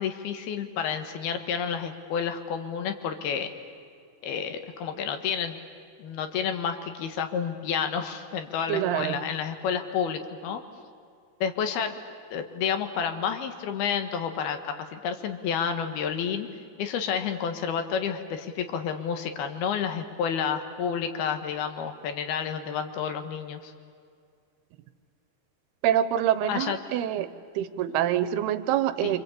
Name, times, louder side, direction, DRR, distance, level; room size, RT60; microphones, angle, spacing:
voice 1, 0.0-3.5 4.2-5.6 6.0-10.6 11.4-11.9 12.3-16.5 16.8-23.7 26.5-26.8 29.0-29.1, left 7 dB, 80° left, 8 dB, 3.4 m, -30 dB
voice 2, 8.7-9.2 25.8-27.3 27.6-29.2, right 11 dB, 85° right, 13 dB, 2.9 m, -25 dB
26.5 x 25.5 x 8.5 m, 2.3 s
omnidirectional pair, 4.5 m